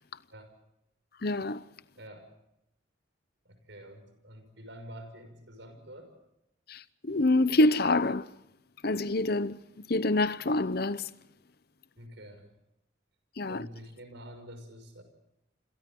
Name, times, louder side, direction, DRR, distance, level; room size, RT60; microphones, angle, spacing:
voice 1, 1.2-1.6 6.7-8.3 8.8-9.6 9.9-11.1 13.4-13.7, left 2 dB, 55° left, 0.8 m, -26 dB
voice 2, 2.0-2.3 3.4-6.1 12.0-12.5 13.5-15.0, equal, 70° right, 6.2 m, -47 dB
28.0 x 27.0 x 3.8 m
head